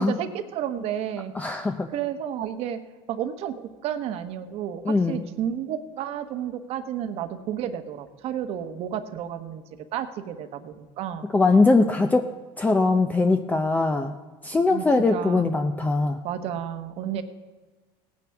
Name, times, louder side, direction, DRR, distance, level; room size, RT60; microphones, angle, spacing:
voice 1, 0.0-9.6 9.9-11.3 14.6-15.5 16.2-17.2, right 9 dB, 55° right, 9 dB, 1.1 m, -32 dB
voice 2, 1.3-1.9 4.9-5.2 11.3-12.3 12.6-14.1 14.4-16.2, left 3 dB, 15° left, 6 dB, 0.6 m, -21 dB
18.0 x 9.4 x 3.5 m, 1.3 s
supercardioid pair, 115°, 12 cm